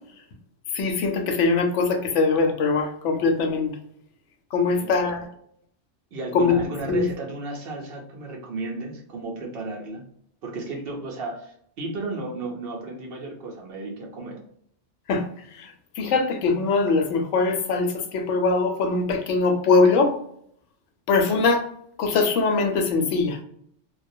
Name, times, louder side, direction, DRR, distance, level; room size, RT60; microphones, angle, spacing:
voice 1, 0.7-3.8 4.5-5.3 6.3-7.0 15.1-15.2 15.6-20.1 21.1-21.7 22.0-23.4, left 4 dB, 90° left, 4 dB, 0.9 m, -22 dB
voice 2, 6.1-10.1 10.4-14.4, right 2 dB, 60° right, 0 dB, 0.8 m, -34 dB
2.3 x 2.1 x 2.6 m, 0.67 s
omnidirectional pair, 1.2 m